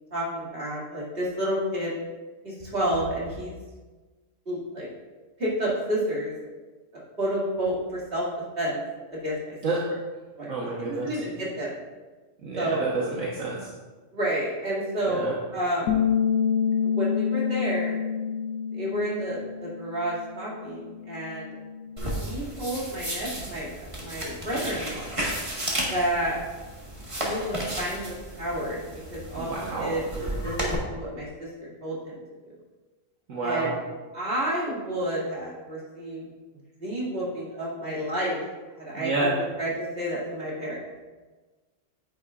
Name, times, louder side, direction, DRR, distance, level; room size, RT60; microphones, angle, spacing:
voice 1, 0.1-2.0 2.4-3.5 4.5-4.9 5.4-6.3 6.9-8.3 8.6-8.8 9.1-9.6 10.4-11.8 12.6-12.8 14.1-16.0 16.8-18.0 18.7-21.5 22.2-23.7 24.0-25.2 25.9-26.4 27.2-32.2 33.4-33.7 34.1-36.3 36.8-38.4 38.8-40.8, right 1 dB, 45° right, -6 dB, 2.6 m, -30 dB
voice 2, 10.5-11.1 12.4-13.7 15.1-15.3 29.4-29.9 33.3-33.7 38.9-39.3, right 3 dB, 70° right, -4 dB, 1.5 m, -29 dB
Bass guitar, 15.9-22.1, left 7 dB, 80° left, 1.1 m, -28 dB
sound 1, 22.0-30.7, right 1 dB, 25° right, 1.5 m, -33 dB
9.7 x 8.9 x 2.4 m, 1.3 s
omnidirectional pair, 1.3 m